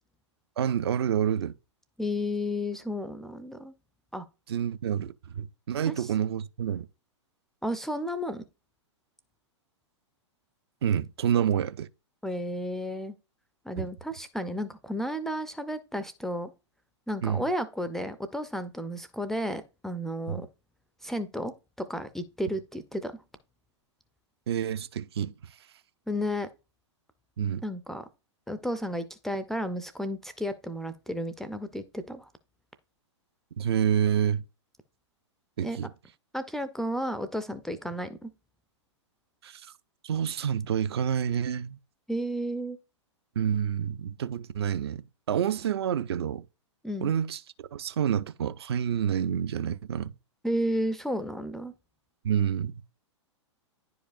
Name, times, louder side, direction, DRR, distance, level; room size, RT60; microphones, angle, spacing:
voice 1, 0.6-1.5 4.5-6.9 10.8-11.9 13.8-13.9 17.2-17.5 20.3-20.4 24.5-25.3 27.4-27.6 33.6-34.4 35.6-35.9 39.4-39.6 40.0-41.8 43.4-46.4 47.0-47.4 47.7-50.1 52.2-52.7, right 8 dB, 55° right, 0.4 m, -28 dB
voice 2, 2.0-3.7 4.1-4.3 5.8-6.1 7.6-8.4 12.2-13.2 13.7-16.5 17.1-20.5 21.0-23.1 26.1-26.5 27.6-28.1 28.5-32.3 35.6-35.8 36.3-38.3 42.1-42.8 46.8-47.1 50.4-51.7, equal, ahead, 0.3 m, -32 dB
10.0 x 4.8 x 2.4 m
figure-of-eight pair, 105°, 16 cm